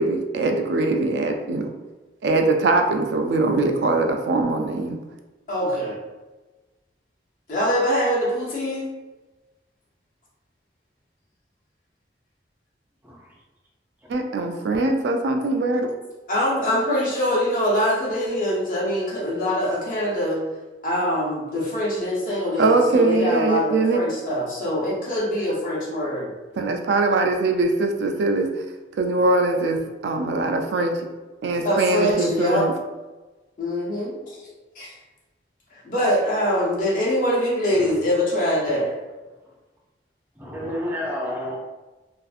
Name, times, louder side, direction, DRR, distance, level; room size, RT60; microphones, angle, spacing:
voice 1, 0.0-1.7 2.2-5.0 14.1-15.9 22.6-24.0 26.6-28.5 29.0-31.0 31.4-32.7, right 3 dB, 75° right, 4 dB, 0.3 m, -22 dB
voice 2, 5.5-6.0 7.5-8.9 16.3-20.4 20.8-26.3 31.6-32.7 33.6-34.5 34.7-35.0 35.7-39.0, equal, 50° left, -4 dB, 0.7 m, -23 dB
voice 3, 13.0-13.3 37.7-37.9 40.4-41.6, left 1 dB, 10° right, -3 dB, 0.4 m, -30 dB
2.5 x 2.4 x 2.4 m, 1.2 s
head